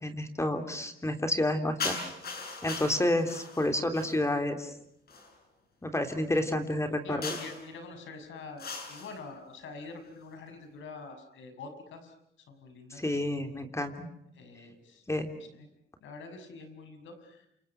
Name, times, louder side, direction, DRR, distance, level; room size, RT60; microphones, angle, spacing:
voice 1, 0.0-2.0 2.6-4.7 5.8-7.4 12.9-14.1 15.1-15.3, left 1 dB, 15° left, 6 dB, 3.2 m, -30 dB
sound 1, 1.8-4.3 5.1-5.3 7.2-7.7 8.6-9.2, left 4 dB, 50° left, 7.8 m, -38 dB
voice 2, 7.0-12.1 12.5-13.0 14.4-15.0 15.5-15.7 16.0-17.4, left 4 dB, 75° left, 7 dB, 6.5 m, -45 dB
29.0 x 27.5 x 6.0 m, 0.75 s
cardioid pair, 90°, 20 cm